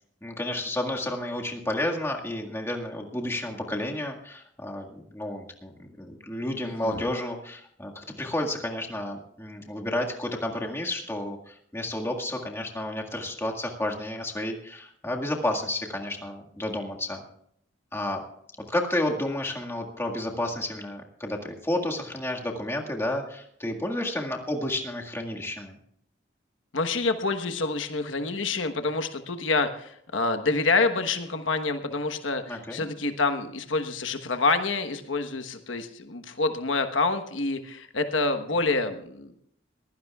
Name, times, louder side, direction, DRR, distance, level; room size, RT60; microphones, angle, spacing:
voice 1, 0.2-17.2 17.9-18.2 18.7-25.8 32.5-32.9, left 1 dB, 15° left, 0 dB, 1.8 m, -31 dB
voice 2, 6.6-7.0 26.7-39.3, left 3 dB, 85° left, 7 dB, 1.2 m, -27 dB
22.5 x 16.0 x 2.4 m, 0.68 s
head